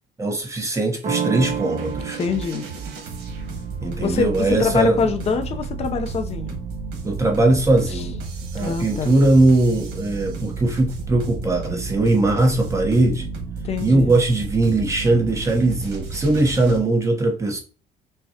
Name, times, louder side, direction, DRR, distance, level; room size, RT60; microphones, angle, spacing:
voice 1, 0.2-2.2 3.8-5.0 7.0-8.2 8.5-13.3 13.8-17.6, right 2 dB, 15° right, 1.0 m, -20 dB
sound 1, 1.0-6.6, right 7 dB, 40° right, 0.8 m, -32 dB
sound 2, 1.3-16.8, right 4 dB, 75° right, 1.4 m, -32 dB
voice 2, 2.2-2.6 4.0-6.6 7.9-8.1 8.6-9.1 13.6-14.1, left 5 dB, 40° left, 0.6 m, -24 dB
5.7 x 2.3 x 2.8 m
cardioid pair, 110°, 17 cm